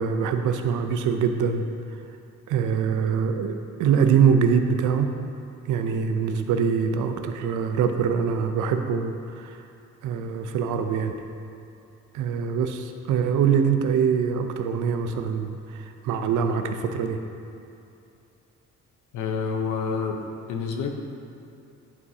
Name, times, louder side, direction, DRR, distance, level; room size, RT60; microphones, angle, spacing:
voice 1, 0.0-1.6 2.5-5.1 5.7-9.6 10.0-11.1 12.1-17.2, right 6 dB, 80° right, 7 dB, 0.6 m, -24 dB
voice 2, 19.1-20.2 20.5-20.9, left 5 dB, 85° left, 3 dB, 0.8 m, -28 dB
11.0 x 4.8 x 2.8 m, 2.7 s
cardioid pair, 90°, 30 cm